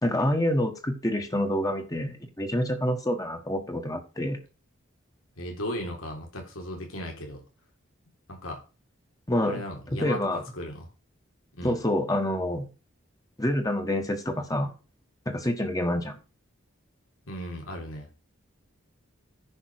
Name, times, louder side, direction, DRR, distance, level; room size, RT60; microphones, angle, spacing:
voice 1, 0.0-4.4 9.3-9.6 9.9-10.4 11.6-12.7 13.4-14.7 15.3-16.2, left 1 dB, 15° left, 6 dB, 1.3 m, -27 dB
voice 2, 5.4-7.4 8.3-8.6 9.5-10.9 11.5-11.8 17.3-18.1, left 1 dB, 85° left, 1 dB, 4.0 m, -36 dB
10.0 x 5.6 x 6.4 m, 0.32 s
head